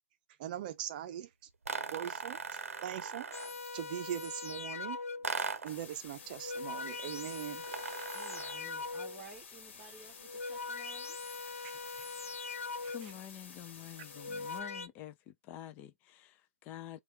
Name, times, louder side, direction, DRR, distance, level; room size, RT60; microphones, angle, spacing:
voice 1, 0.4-1.3 1.9-3.3 3.7-5.0 5.6-7.6 11.6-12.0 12.8-12.9, right 11 dB, 40° right, 0.6 m, -41 dB
sound 1, 1.6-3.6 5.2-5.8 7.6-8.7, right 5 dB, 80° right, 0.7 m, -39 dB
sound 2, 3.3-5.4 6.2-9.4 10.1-13.3 14.0-14.9, left 4 dB, 80° left, 0.5 m, -42 dB
sound 3, 5.7-14.6, left 5 dB, 55° left, 1.5 m, -52 dB
voice 2, 8.1-11.2, right 3 dB, 15° right, 1.0 m, -54 dB
voice 3, 12.9-17.0, left 11 dB, 25° left, 0.5 m, -48 dB
4.2 x 2.4 x 3.2 m
hypercardioid pair, 135°, 7 cm